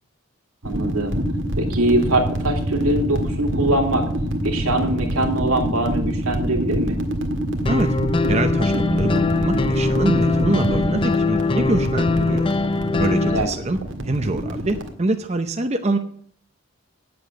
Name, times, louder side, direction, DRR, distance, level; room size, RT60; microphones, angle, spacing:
sound 1, 0.6-14.9, right 1 dB, 60° right, 1.8 m, -26 dB
voice 1, 0.6-1.2 1.6-4.1 4.4-7.0 13.2-13.5, right 1 dB, 90° right, 3 dB, 2.6 m, -22 dB
sound 2, 7.7-13.4, left 3 dB, 25° left, 0.4 m, -21 dB
voice 2, 8.3-12.5 13.0-13.8 14.0-16.0, right 2 dB, 30° right, 7 dB, 0.7 m, -25 dB
9.8 x 7.8 x 7.8 m, 0.63 s
head